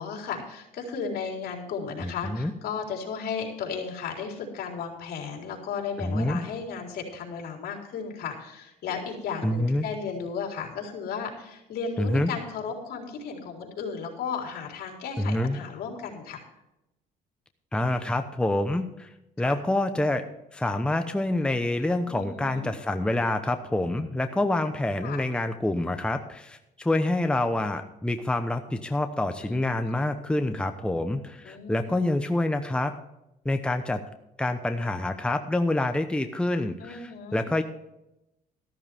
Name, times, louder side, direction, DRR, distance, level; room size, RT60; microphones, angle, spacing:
voice 1, 0.0-16.4 19.4-19.5 22.1-22.7 25.0-25.2 29.4-29.9 31.4-32.0 36.8-37.4, left 6 dB, 65° left, 0 dB, 4.1 m, -35 dB
voice 2, 2.0-2.5 6.0-6.4 9.4-9.8 12.0-12.3 15.2-15.6 17.7-19.1 19.4-20.3 20.5-32.9 33.4-34.0 34.4-37.6, left 1 dB, 5° left, 7 dB, 0.9 m, -27 dB
14.0 x 13.0 x 3.5 m, 0.88 s
cardioid pair, 110°, 17 cm